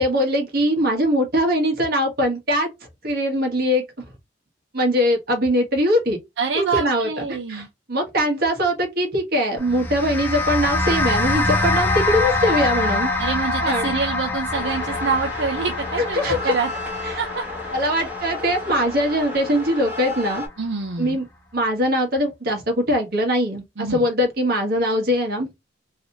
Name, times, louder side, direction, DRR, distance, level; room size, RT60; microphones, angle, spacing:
voice 1, 0.0-2.7 3.0-3.8 4.7-6.2 6.5-13.1 13.6-14.0 16.0-16.5 17.0-17.2 17.7-20.4 21.0-21.2 21.5-25.6, equal, 50° right, 1.3 m, -21 dB
voice 2, 6.4-7.7 13.2-16.7 17.2-17.4 20.6-21.2 23.8-24.0, right 5 dB, 70° right, 0.6 m, -26 dB
sound 1, 9.6-20.1, left 2 dB, 10° left, 0.6 m, -25 dB
sound 2, 14.5-20.5, left 3 dB, 10° right, 1.3 m, -33 dB
3.2 x 2.8 x 2.8 m
head